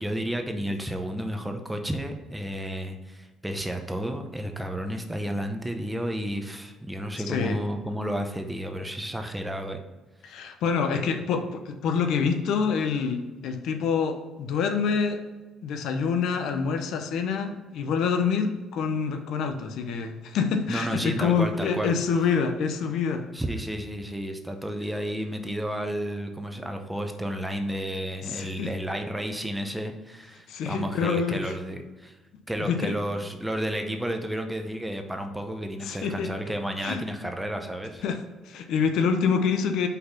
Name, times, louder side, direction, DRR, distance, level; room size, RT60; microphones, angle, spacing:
voice 1, 0.0-9.8 20.7-22.0 23.3-32.2 32.5-38.0, equal, 5° right, 5 dB, 0.7 m, -32 dB
voice 2, 7.3-7.6 10.2-15.2 15.6-23.3 28.2-28.7 30.5-31.5 32.6-32.9 35.8-36.3 36.8-37.0 38.0-38.2 38.5-39.9, left 6 dB, 75° left, 6 dB, 0.7 m, -26 dB
5.5 x 4.1 x 5.7 m, 1.2 s
cardioid pair, 125°, 0 cm